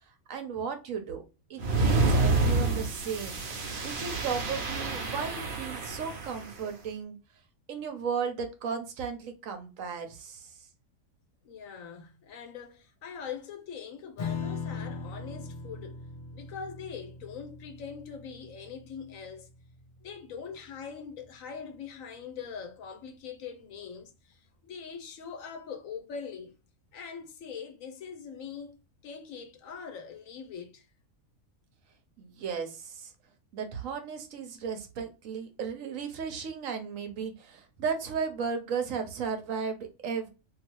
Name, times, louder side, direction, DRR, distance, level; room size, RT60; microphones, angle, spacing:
voice 1, 0.3-1.2 1.5-3.4 3.8-7.2 7.7-10.5 32.2-33.1 33.5-40.3, right 6 dB, 70° right, 1.1 m, -35 dB
sound 1, 1.6-6.5, right 3 dB, 50° right, 0.8 m, -28 dB
voice 2, 11.4-16.0 16.3-19.5 20.0-26.5 26.9-28.8 29.0-30.9, left 6 dB, 70° left, 1.1 m, -42 dB
Strum, 14.2-21.0, left 5 dB, 55° left, 0.5 m, -40 dB
2.8 x 2.7 x 2.9 m
omnidirectional pair, 1.4 m